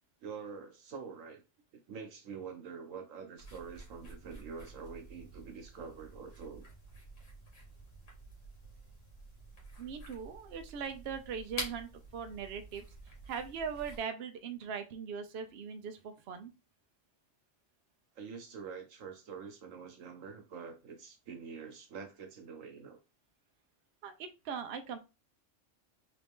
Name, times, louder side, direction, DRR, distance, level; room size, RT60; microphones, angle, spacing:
voice 1, 0.2-1.4 1.7-6.6 18.1-23.0, right 6 dB, 90° right, 1.3 m, -46 dB
sound 1, 3.4-14.0, equal, 75° left, 1.7 m, -48 dB
voice 2, 9.8-12.8 13.3-16.5 24.0-25.0, right 6 dB, 60° right, 0.8 m, -40 dB
3.8 x 2.5 x 3.5 m
omnidirectional pair, 1.3 m